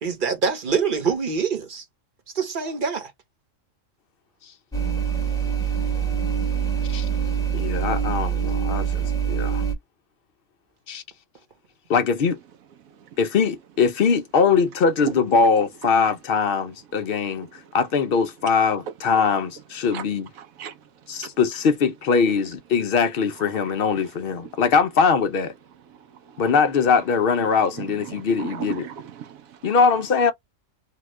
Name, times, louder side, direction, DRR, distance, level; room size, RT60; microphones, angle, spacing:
voice 1, 0.0-1.8 2.3-3.1, right 5 dB, 40° right, 1.0 m, -25 dB
sound 1, 4.7-9.7, right 8 dB, 5° left, 0.9 m, -24 dB
voice 2, 7.5-9.6 10.9-11.0 11.9-12.4 13.2-17.5 17.7-20.3 21.1-25.5 26.4-28.9 29.6-30.3, left 5 dB, 60° left, 0.6 m, -21 dB
voice 3, 15.0-15.5 19.9-20.1 20.3-20.7 22.8-22.9 23.4-24.1 24.4-24.7 26.3-26.7 27.0-29.6 29.9-30.0, right 9 dB, 80° right, 1.0 m, -37 dB
2.8 x 2.3 x 3.1 m
omnidirectional pair, 1.4 m